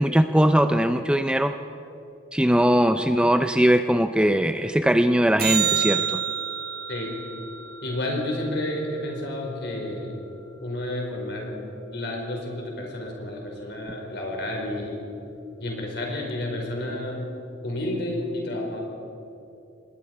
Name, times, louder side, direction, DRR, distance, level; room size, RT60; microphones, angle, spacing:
voice 1, 0.0-1.6 2.3-6.2, equal, 5° right, 9 dB, 0.4 m, -20 dB
sound 1, 5.4-9.9 16.4-16.5, right 8 dB, 50° right, 1.2 m, -30 dB
voice 2, 7.8-10.1 10.6-11.6 11.9-15.0 15.6-17.2 17.6-18.8, left 1 dB, 60° left, 0 dB, 4.8 m, -30 dB
27.0 x 20.0 x 4.8 m, 2.9 s
head